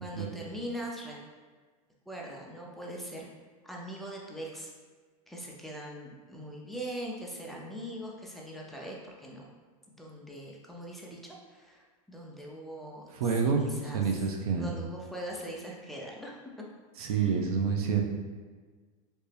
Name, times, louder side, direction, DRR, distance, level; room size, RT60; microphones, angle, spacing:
voice 1, 0.0-1.2 2.1-3.3 3.6-4.7 5.3-9.5 9.9-13.0 13.4-14.2 14.6-16.4 17.0-17.5, right 1 dB, ahead, -3 dB, 0.5 m, -41 dB
voice 2, 13.1-14.8 17.0-18.0, right 5 dB, 80° right, 2 dB, 0.6 m, -28 dB
3.2 x 2.8 x 3.3 m, 1.5 s
supercardioid pair, 120°, 19 cm